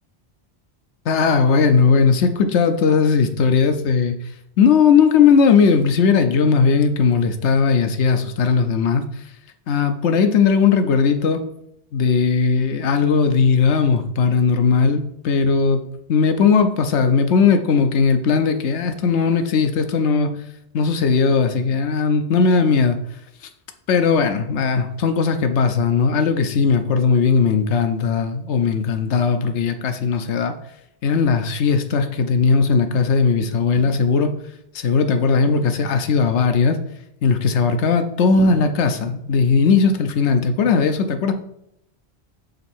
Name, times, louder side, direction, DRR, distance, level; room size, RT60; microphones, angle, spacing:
voice 1, 1.1-4.2 4.6-9.0 9.7-11.4 11.9-15.8 16.1-20.3 20.7-23.0 23.9-30.5 31.0-34.3 34.7-36.8 37.2-41.3, left 5 dB, 85° left, 8 dB, 1.0 m, -18 dB
5.5 x 4.0 x 4.4 m, 0.77 s
omnidirectional pair, 1.1 m